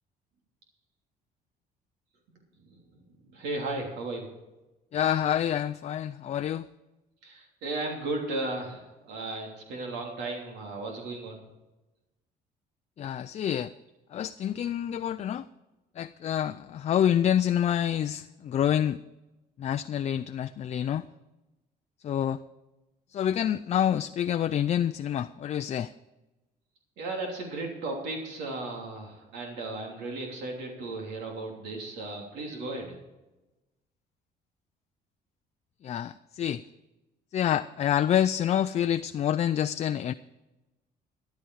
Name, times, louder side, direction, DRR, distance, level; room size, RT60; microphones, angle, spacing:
voice 1, 3.3-4.3 7.2-11.4 27.0-32.9, right 2 dB, 90° right, 0 dB, 3.1 m, -35 dB
voice 2, 4.9-6.7 13.0-13.7 14.1-15.5 16.0-19.0 19.6-21.1 22.0-22.4 23.1-25.9 35.8-36.6 37.3-40.1, left 10 dB, 40° left, 10 dB, 0.4 m, -27 dB
13.5 x 11.5 x 4.7 m, 1.1 s
cardioid pair, 110°, 17 cm